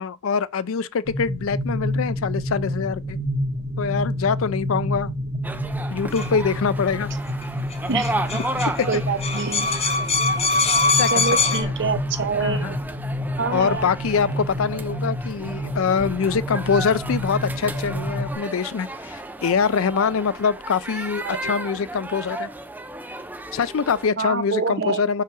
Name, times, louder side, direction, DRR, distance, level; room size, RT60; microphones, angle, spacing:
voice 1, 0.0-3.2 3.8-5.1 5.9-7.1 8.5-8.9 11.0-11.7 12.4-12.8 13.5-22.5 23.5-25.2, left 6 dB, 70° left, 0.4 m, -24 dB
sound 1, 1.1-18.3, left 1 dB, 40° right, 1.8 m, -29 dB
sound 2, 5.4-24.1, right 2 dB, 10° right, 0.6 m, -34 dB
sound 3, 6.1-6.3 7.4-7.5 7.7-7.8 8.0-11.6, left 3 dB, 30° left, 1.1 m, -22 dB
voice 2, 8.9-9.7 11.1-12.6 13.4-13.9 21.2-21.4 24.2-25.0, right 4 dB, 60° right, 0.9 m, -26 dB
5.6 x 4.7 x 6.1 m
head